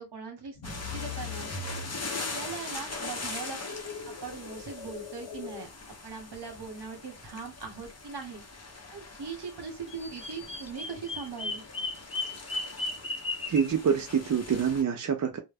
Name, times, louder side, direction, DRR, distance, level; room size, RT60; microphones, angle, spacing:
voice 1, 0.0-1.5 2.3-3.6 4.1-8.4 8.9-11.6, right 5 dB, 65° right, 1.0 m, -40 dB
sound 1, 0.6-5.7, left 4 dB, 80° left, 0.9 m, -42 dB
sound 2, 0.6-14.8, left 3 dB, 35° left, 0.7 m, -42 dB
Bird vocalization bird call bird song, 9.9-13.7, left 2 dB, 15° left, 0.4 m, -35 dB
voice 2, 13.5-15.4, right 7 dB, 45° right, 0.4 m, -26 dB
2.1 x 2.1 x 3.3 m
wide cardioid pair, 70°, 43 cm